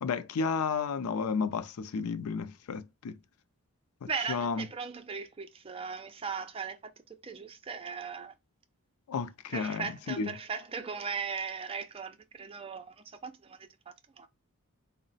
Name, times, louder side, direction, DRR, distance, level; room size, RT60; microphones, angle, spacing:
voice 1, 0.0-3.2 4.0-4.6 9.1-10.3, left 5 dB, 90° left, 0.4 m, -32 dB
voice 2, 4.1-6.8 7.1-8.3 9.5-14.3, right 5 dB, 25° right, 0.4 m, -38 dB
3.9 x 2.1 x 3.9 m
head